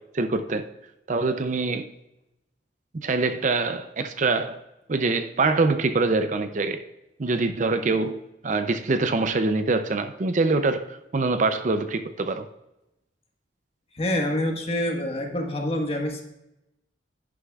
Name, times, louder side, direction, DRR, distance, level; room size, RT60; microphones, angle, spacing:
voice 1, 0.1-0.7 1.1-1.9 2.9-4.6 4.9-6.8 7.2-12.5, right 3 dB, 40° right, 0.5 m, -24 dB
voice 2, 13.9-16.2, left 1 dB, 30° left, 1.4 m, -26 dB
11.0 x 9.7 x 2.4 m
head